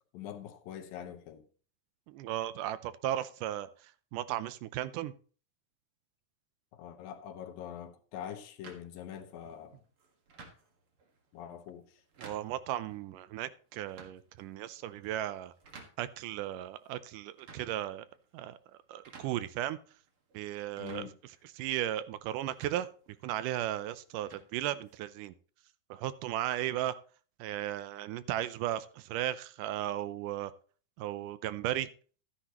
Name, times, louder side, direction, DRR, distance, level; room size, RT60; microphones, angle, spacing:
voice 1, 0.1-1.4 6.7-9.8 11.3-12.0 20.8-21.1, left 9 dB, 80° left, 2.7 m, -44 dB
voice 2, 2.1-5.1 12.2-15.5 16.0-18.1 18.3-18.6 18.9-19.8 20.3-21.1 21.6-22.9 23.2-25.3 25.9-27.0 27.4-30.5 31.0-31.9, right 13 dB, 80° right, 2.0 m, -35 dB
sound 1, 8.6-25.3, right 4 dB, 45° right, 2.0 m, -58 dB
12.5 x 9.9 x 3.0 m
omnidirectional pair, 4.1 m